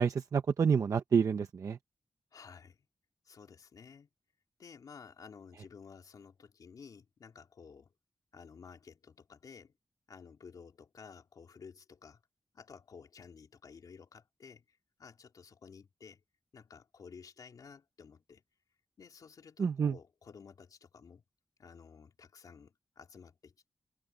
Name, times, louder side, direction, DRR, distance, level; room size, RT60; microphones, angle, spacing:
voice 1, 0.0-1.8 19.6-20.0, right 6 dB, 60° right, 0.7 m, -28 dB
voice 2, 2.3-2.9 3.2-4.1 4.6-7.9 8.3-9.7 10.1-12.2 12.5-16.2 16.5-18.4 19.0-21.2 21.6-23.7, left 6 dB, 75° left, 3.4 m, -53 dB
wide cardioid pair, 175°, 6 cm